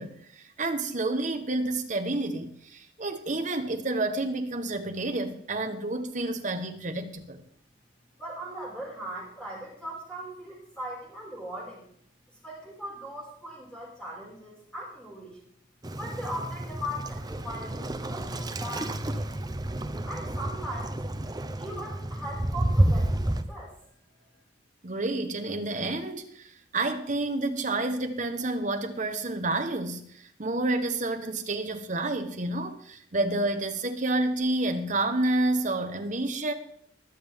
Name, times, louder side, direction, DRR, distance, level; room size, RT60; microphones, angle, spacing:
voice 1, 0.0-7.4 24.8-36.5, right 2 dB, 40° right, 1.1 m, -29 dB
voice 2, 8.2-11.8 12.4-15.4 15.9-19.5 20.1-21.0 21.6-23.7, equal, 5° left, 5.4 m, -39 dB
Waves surf, 15.8-23.4, right 1 dB, 20° right, 0.6 m, -30 dB
21.0 x 7.4 x 3.6 m
head